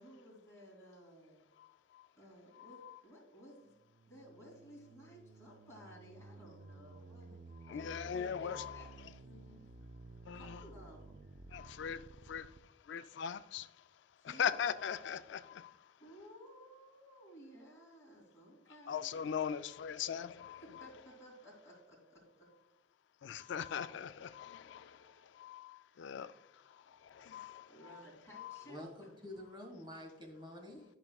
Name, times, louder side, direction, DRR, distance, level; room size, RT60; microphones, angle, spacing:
voice 1, 0.0-1.4 2.2-3.7 4.1-7.9 8.1-8.9 9.2-9.6 10.3-11.2 14.2-14.8 16.0-19.1 20.6-22.5 27.7-29.2, equal, 15° left, 2.7 m, -56 dB
voice 2, 1.6-2.1 2.5-3.0 7.6-9.1 10.3-10.6 11.5-15.9 18.9-20.9 23.2-28.0 28.3-28.6, left 7 dB, 65° left, 0.3 m, -41 dB
sound 1, 3.8-12.6, right 3 dB, 45° right, 0.4 m, -54 dB
voice 3, 28.6-30.8, left 1 dB, 25° right, 1.8 m, -48 dB
12.0 x 6.0 x 2.3 m
head